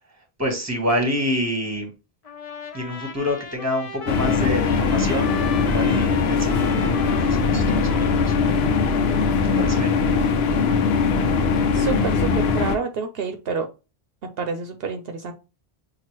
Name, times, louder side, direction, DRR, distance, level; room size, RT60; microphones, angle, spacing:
voice 1, 0.4-1.9 2.7-8.3 9.4-9.9, equal, 15° right, 3 dB, 1.1 m, -27 dB
Trumpet, 2.2-9.4, left 5 dB, 40° left, 0.8 m, -37 dB
sound 1, 4.1-12.8, left 5 dB, 80° left, 0.8 m, -21 dB
voice 2, 11.7-13.7 14.4-15.3, right 5 dB, 70° right, 7 dB, 0.8 m, -28 dB
5.9 x 2.4 x 3.0 m, 0.29 s
omnidirectional pair, 1.0 m